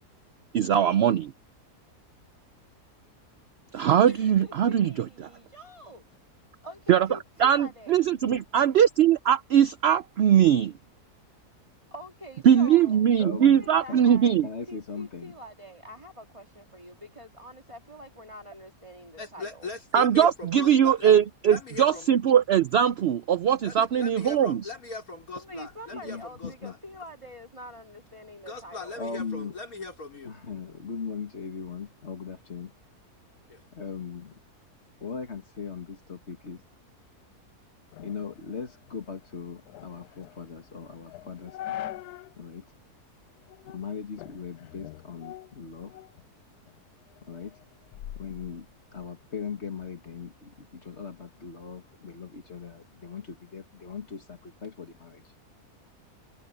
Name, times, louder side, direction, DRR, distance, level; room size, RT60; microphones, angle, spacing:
voice 1, 0.5-1.3 3.7-4.9 6.9-7.1 7.4-10.7 12.4-14.5 19.9-24.7, right 9 dB, 75° right, 0.5 m, -21 dB
voice 2, 3.7-6.2 6.6-8.0 11.9-14.3 14.7-19.7 25.3-29.0, equal, 20° right, 2.0 m, -45 dB
voice 3, 13.2-14.0 14.4-15.3 25.9-26.7 29.0-29.5 30.2-32.7 33.7-34.4 35.0-36.6 38.0-41.9 42.4-42.6 43.7-45.9 47.2-47.6 48.2-48.7 48.9-55.2, left 5 dB, 45° left, 2.1 m, -39 dB
voice 4, 19.2-21.1 21.5-22.1 23.6-26.8 28.5-30.3 33.5-33.6, left 3 dB, 65° left, 4.4 m, -39 dB
sound 1, 37.9-42.4 42.8-42.9 43.5-43.9 44.2-46.3 46.7-49.1, left 13 dB, 85° left, 1.1 m, -43 dB
omnidirectional pair, 1.7 m